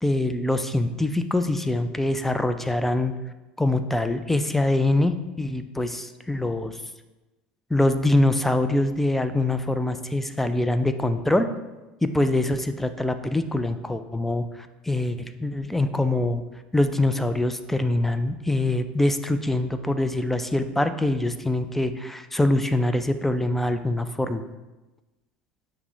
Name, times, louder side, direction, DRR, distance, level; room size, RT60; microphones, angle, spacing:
voice 1, 0.0-3.1 3.6-6.8 7.7-11.5 12.0-16.4 16.7-24.4, left 1 dB, 5° left, 10 dB, 0.3 m, -24 dB
5.8 x 2.1 x 4.4 m, 1.1 s
hypercardioid pair, 80°, 5 cm